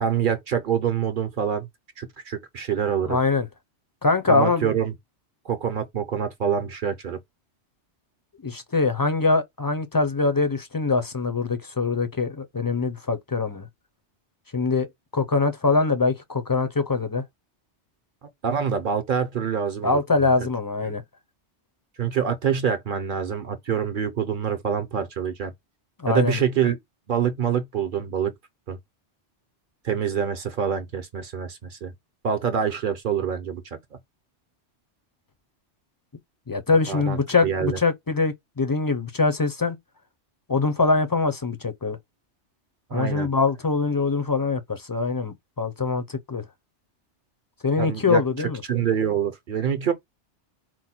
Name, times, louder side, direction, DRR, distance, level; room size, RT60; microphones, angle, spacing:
voice 1, 0.0-1.7 2.0-3.2 4.3-4.9 5.5-7.2 18.4-20.0 20.8-20.9 22.0-25.5 26.1-26.8 27.1-28.3 28.7-28.8 29.8-31.9 32.2-33.6 36.9-37.8 42.9-43.3 47.8-48.2 48.7-49.9, right 8 dB, 55° right, 0.7 m, -26 dB
voice 2, 3.1-3.5 4.0-4.7 8.4-13.7 14.5-14.9 15.1-17.2 19.8-21.0 26.0-26.4 36.5-39.8 40.5-42.0 42.9-46.4 47.6-48.6, left 4 dB, 30° left, 0.4 m, -23 dB
4.5 x 2.1 x 4.2 m
omnidirectional pair, 1.2 m